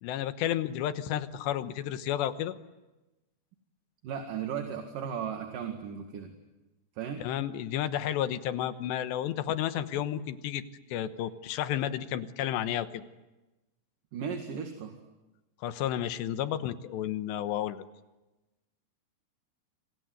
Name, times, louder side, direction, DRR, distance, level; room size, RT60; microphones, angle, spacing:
voice 1, 0.0-2.5 7.2-10.6 10.9-13.0 15.6-17.8, left 11 dB, 75° left, 11 dB, 3.2 m, -32 dB
voice 2, 4.0-6.4 7.0-7.2 14.1-15.0, right 7 dB, 55° right, 4 dB, 3.2 m, -36 dB
28.5 x 26.5 x 7.9 m, 1.1 s
omnidirectional pair, 5.2 m